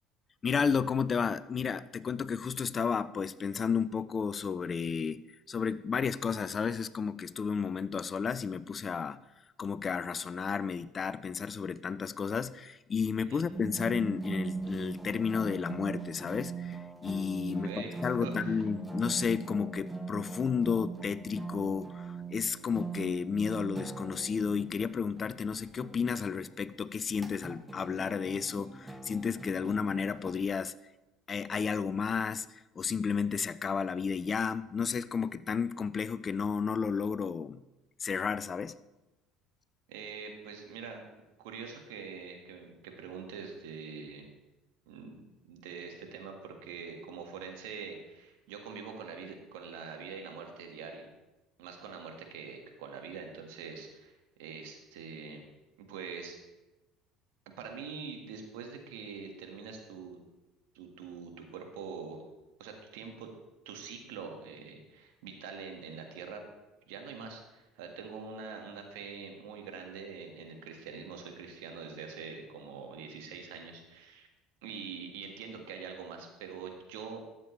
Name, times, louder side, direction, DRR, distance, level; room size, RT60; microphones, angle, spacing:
voice 1, 0.4-9.2 9.6-30.7 31.3-37.6 38.0-38.8, left 6 dB, 35° left, 17 dB, 0.4 m, -32 dB
sound 1, 13.5-30.3, right 3 dB, 10° right, 0.9 m, -41 dB
voice 2, 17.6-17.9 18.2-18.6 39.9-41.0 41.4-44.2 44.9-45.2 45.4-51.1 51.6-54.1 54.4-55.5 55.8-56.4 57.6-60.2 60.7-62.2 62.6-63.3 63.6-66.4 66.9-74.3 74.6-77.2, right 5 dB, 80° right, 3 dB, 1.6 m, -44 dB
13.0 x 7.4 x 3.2 m, 1.0 s
hypercardioid pair, 75°, 0 cm